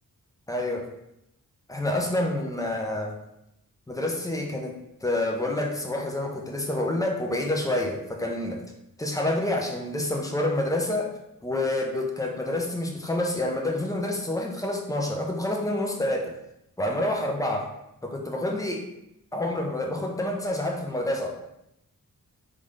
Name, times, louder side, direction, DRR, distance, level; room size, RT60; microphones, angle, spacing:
voice 1, 0.5-0.9 1.7-3.2 3.9-8.6 9.0-11.1 11.4-16.3 16.8-17.7 18.0-18.9 19.3-21.3, left 1 dB, 10° left, 1 dB, 0.6 m, -28 dB
3.6 x 2.5 x 3.2 m, 0.83 s
cardioid pair, 70°, 35 cm